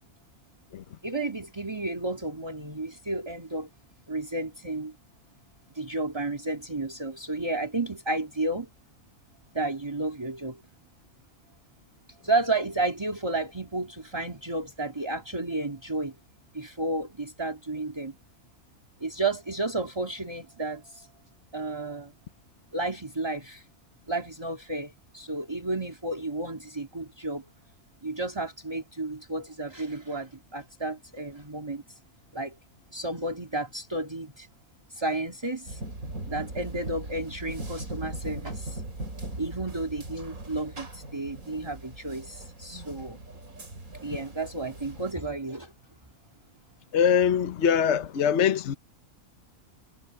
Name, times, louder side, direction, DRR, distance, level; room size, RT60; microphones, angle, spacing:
voice 1, 1.0-3.7 4.1-4.9 5.7-8.7 9.5-10.6 12.2-16.1 16.5-18.1 19.0-21.1 21.5-22.1 22.7-23.7 24.1-27.4 28.0-32.0 32.3-32.5 32.9-34.5 34.9-35.8 36.3-38.8 39.4-43.2 44.0-45.7, right 2 dB, 20° right, 2.3 m, -32 dB
sound 1, 35.7-45.1, right 2 dB, 80° right, 4.8 m, -39 dB
voice 2, 46.9-48.7, left 7 dB, 60° left, 1.2 m, -23 dB
omnidirectional pair, 1.4 m